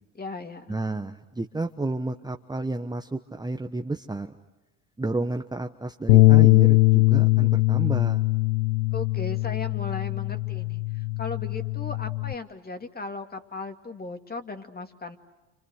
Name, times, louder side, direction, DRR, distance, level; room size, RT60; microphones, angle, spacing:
voice 1, 0.1-0.8 8.9-15.2, left 3 dB, 20° left, 6 dB, 2.5 m, -37 dB
voice 2, 0.7-4.3 5.0-8.2, right 2 dB, 10° right, 4 dB, 1.1 m, -31 dB
Bass guitar, 6.1-12.3, left 22 dB, 60° left, 1.0 m, -21 dB
29.5 x 27.0 x 6.5 m, 1.1 s
hypercardioid pair, 70°, 43 cm